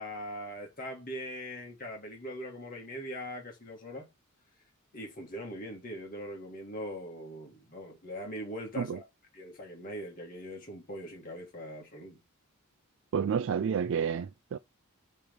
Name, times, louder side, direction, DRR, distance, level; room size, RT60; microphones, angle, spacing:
voice 1, 0.0-4.1 4.9-9.1 9.3-12.2, equal, 40° left, 1.8 m, -41 dB
voice 2, 13.1-14.6, right 7 dB, 60° right, 0.3 m, -30 dB
8.5 x 3.4 x 5.3 m
head